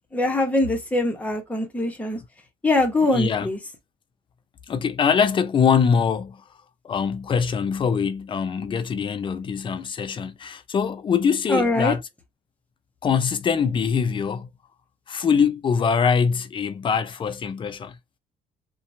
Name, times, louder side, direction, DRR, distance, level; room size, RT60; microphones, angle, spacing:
voice 1, 0.1-2.2 2.6-3.6 11.5-11.9, left 2 dB, 10° left, 0.8 m, -22 dB
voice 2, 3.0-3.5 4.7-6.4 6.8-12.0 13.0-14.5 15.1-18.0, left 6 dB, 30° left, 0.4 m, -23 dB
2.8 x 2.2 x 2.5 m
cardioid pair, 110°, 17 cm